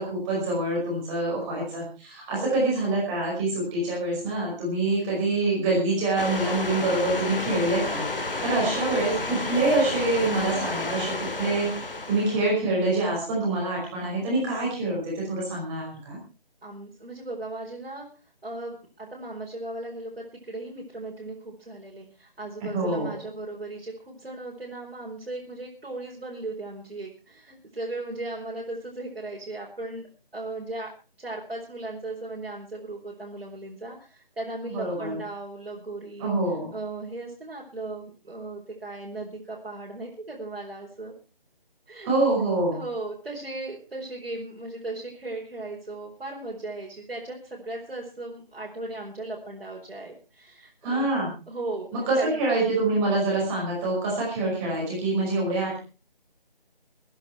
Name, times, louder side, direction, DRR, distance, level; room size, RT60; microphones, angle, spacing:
voice 1, 0.0-11.7 12.1-16.2 22.6-23.1 34.7-35.1 36.2-36.7 42.0-42.8 50.8-51.3 51.9-55.8, right 2 dB, 10° right, -4 dB, 5.3 m, -26 dB
voice 2, 2.3-2.7 8.5-9.2 16.6-18.1 18.4-30.1 30.3-30.9 31.2-36.3 36.7-41.1 41.9-42.1 42.7-51.1 51.5-52.4, right 2 dB, 80° right, -3 dB, 4.9 m, -37 dB
sound 1, 6.2-12.5, left 2 dB, 65° left, 2.9 m, -31 dB
22.0 x 10.5 x 4.5 m, 0.34 s
figure-of-eight pair, 170°, 29 cm